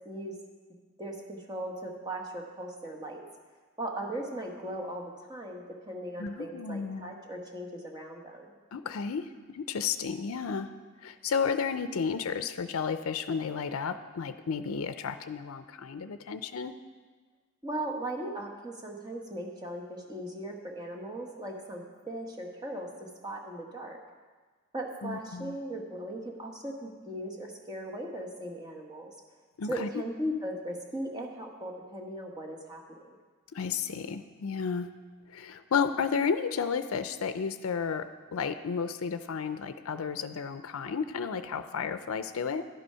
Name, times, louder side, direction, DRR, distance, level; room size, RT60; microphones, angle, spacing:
voice 1, 1.0-3.2 3.8-8.5 17.6-24.0 24.7-29.1 29.7-33.2, right 1 dB, 20° right, 0 dB, 1.2 m, -38 dB
voice 2, 6.2-7.1 8.7-10.7 11.0-16.8 25.0-25.6 29.6-29.9 33.5-34.9 35.3-42.6, left 6 dB, 80° left, 11 dB, 0.5 m, -32 dB
11.5 x 8.0 x 5.6 m, 1.4 s
head